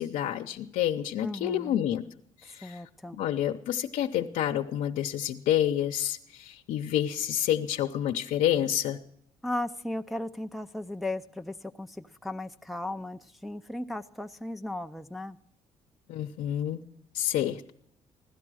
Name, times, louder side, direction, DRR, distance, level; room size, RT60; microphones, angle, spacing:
voice 1, 0.0-2.0 2.4-2.8 3.1-9.0 16.1-16.8 17.1-17.7, left 11 dB, 85° left, 3 dB, 0.8 m, -28 dB
voice 2, 1.2-1.9 2.6-3.2 9.4-15.4, left 1 dB, ahead, 5 dB, 0.5 m, -36 dB
16.5 x 12.0 x 6.3 m, 0.70 s
cardioid pair, 120°, 13 cm